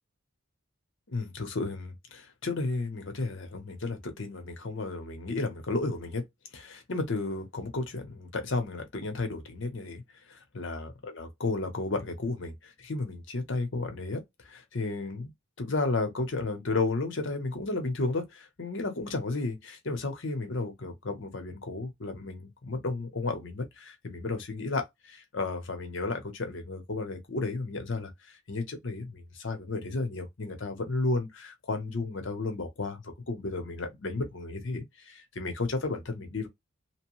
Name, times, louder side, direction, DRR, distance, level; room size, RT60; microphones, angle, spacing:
voice 1, 1.1-6.2 6.5-10.0 10.3-15.3 15.6-36.5, left 3 dB, 60° left, 0.8 m, -33 dB
2.9 x 2.2 x 3.0 m
head